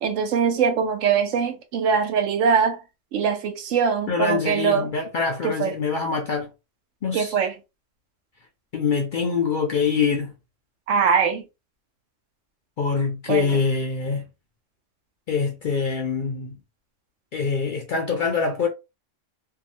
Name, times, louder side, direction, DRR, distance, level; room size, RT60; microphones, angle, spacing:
voice 1, 0.0-2.8 3.1-4.9 5.4-5.7 7.1-7.5 10.9-11.5 13.3-13.5, right 6 dB, 80° right, 1.0 m, -22 dB
voice 2, 4.1-6.5 7.0-7.3 8.7-10.3 12.8-14.2 15.3-16.6 17.3-18.7, left 5 dB, 60° left, 0.5 m, -24 dB
2.7 x 2.3 x 2.6 m
omnidirectional pair, 1.3 m